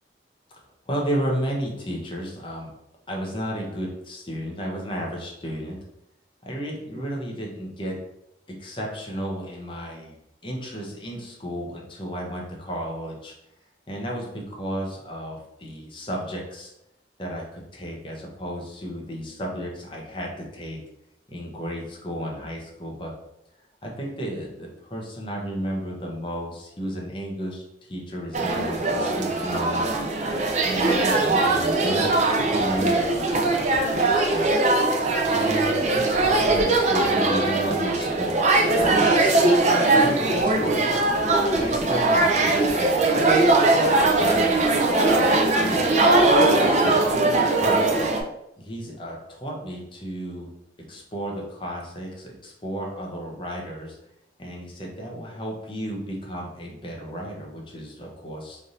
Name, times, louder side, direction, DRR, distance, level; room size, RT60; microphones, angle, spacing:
voice 1, 0.9-2.7 3.1-5.8 6.4-8.0 8.5-10.2 10.4-13.3 13.9-16.7 17.2-20.8 21.3-23.1 23.8-30.0 30.6-34.5 35.3-39.4 39.9-41.3 41.5-43.4 43.7-46.0 46.4-47.9 48.6-50.5 50.9-54.0 54.4-58.6, equal, 30° left, -1 dB, 0.8 m, -33 dB
sound 1, 28.3-48.2, right 2 dB, 40° right, 0.5 m, -20 dB
3.3 x 2.6 x 4.0 m, 0.83 s
head